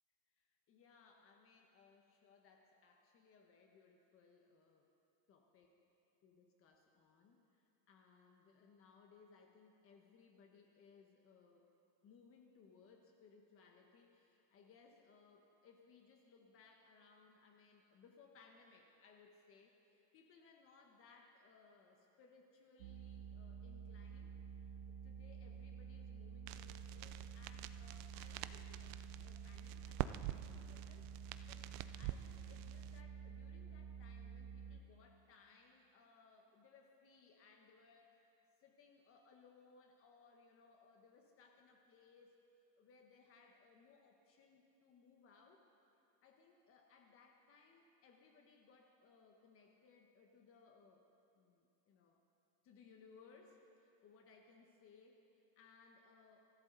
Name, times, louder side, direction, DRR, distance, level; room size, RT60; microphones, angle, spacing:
voice 1, 0.4-4.9 5.3-5.8 6.2-11.7 12.0-24.4 24.9-29.0 29.2-31.7 32.0-38.3 38.6-42.4 42.8-45.6 46.2-51.1 51.3-52.2 52.6-56.4, left 5 dB, 30° left, 2 dB, 1.3 m, -66 dB
sound 1, 22.8-34.8, right 7 dB, 90° right, 1.0 m, -51 dB
sound 2, 26.5-33.0, right 15 dB, 45° right, 0.5 m, -47 dB
24.5 x 14.5 x 4.1 m, 2.6 s
supercardioid pair, 155°, 42 cm